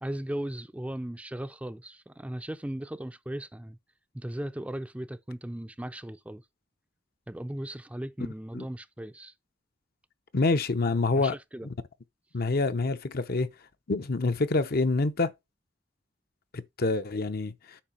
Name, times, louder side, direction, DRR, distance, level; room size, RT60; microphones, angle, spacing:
voice 1, 0.0-3.8 4.1-6.4 7.3-9.3 11.1-11.7, right 1 dB, 5° right, 0.5 m, -37 dB
voice 2, 10.3-11.3 11.6-11.7 12.3-13.5 13.9-15.3 16.5-17.8, left 3 dB, 55° left, 0.7 m, -27 dB
8.7 x 5.8 x 4.3 m
head